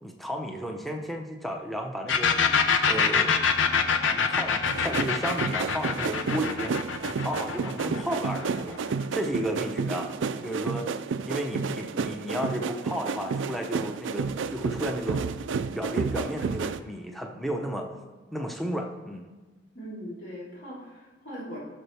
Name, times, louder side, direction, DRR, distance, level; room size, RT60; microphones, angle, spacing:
voice 1, 0.0-2.4 2.8-3.4 4.1-6.8 7.2-8.8 9.1-10.1 10.4-10.9 11.2-15.2 15.7-17.9 18.3-19.3, equal, ahead, 2 dB, 0.8 m, -33 dB
sound 1, 2.1-9.6, left 6 dB, 85° left, 0.7 m, -25 dB
sound 2, 4.7-16.8, right 5 dB, 80° right, 0.4 m, -31 dB
voice 2, 19.7-21.6, equal, 60° left, -7 dB, 3.7 m, -40 dB
15.0 x 6.6 x 3.5 m, 1.2 s
head